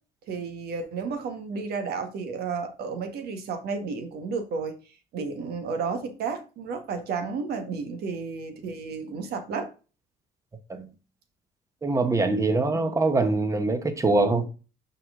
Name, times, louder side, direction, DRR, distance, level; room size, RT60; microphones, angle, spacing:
voice 1, 0.3-4.8 5.1-9.7, right 5 dB, 70° right, 1.6 m, -32 dB
voice 2, 11.8-14.5, right 3 dB, 20° right, 1.1 m, -23 dB
5.8 x 4.8 x 3.7 m
cardioid pair, 110°, 17 cm